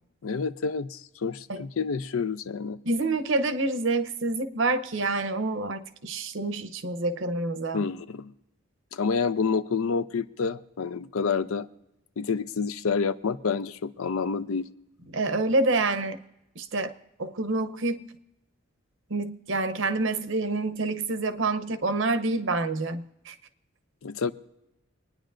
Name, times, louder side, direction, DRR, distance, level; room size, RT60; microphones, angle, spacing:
voice 1, 0.2-2.8 7.7-8.3 8.9-11.7 12.2-14.7 24.0-24.3, left 5 dB, 90° left, 13 dB, 0.5 m, -28 dB
voice 2, 2.9-7.8 15.1-16.2 16.6-16.9 17.2-18.0 19.1-23.3, right 2 dB, 65° right, 10 dB, 0.8 m, -27 dB
25.5 x 9.8 x 2.6 m, 0.90 s
head